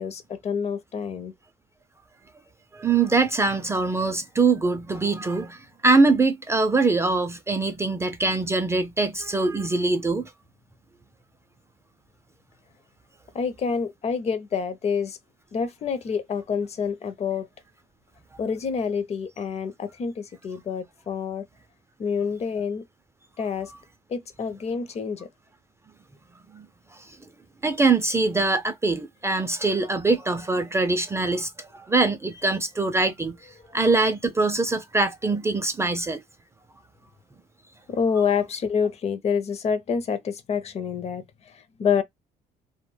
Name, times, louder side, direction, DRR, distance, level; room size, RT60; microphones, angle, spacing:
voice 1, 0.0-1.3 13.3-15.2 15.5-17.5 18.4-21.5 22.0-22.8 23.4-23.7 24.1-25.3 33.6-33.7 37.9-42.0, left 6 dB, 40° left, 0.5 m, -27 dB
voice 2, 2.7-10.3 26.5-26.7 27.6-33.4 33.7-36.2, right 3 dB, 15° right, 0.3 m, -23 dB
2.1 x 2.0 x 3.1 m
cardioid pair, 110°, 17 cm